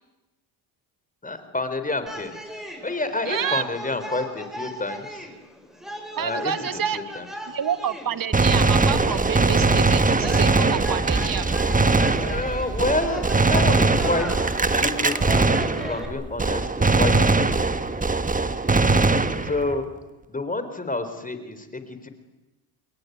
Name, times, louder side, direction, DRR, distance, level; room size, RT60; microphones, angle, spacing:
voice 1, 1.2-2.4 2.8-5.3 6.2-7.3 12.2-15.5 15.7-17.9 18.6-19.9 20.3-22.1, left 2 dB, 15° left, 10 dB, 3.9 m, -29 dB
sound 1, 2.1-16.1, equal, ahead, 6.5 m, -37 dB
voice 2, 3.3-3.6 6.2-7.1 7.5-11.6, right 9 dB, 45° right, 13 dB, 1.7 m, -28 dB
Gunshot gunfire, 8.3-16.1 16.4-19.7, right 3 dB, 15° right, 1.5 m, -21 dB
29.0 x 22.0 x 9.4 m, 1.0 s
cardioid pair, 85°, 45 cm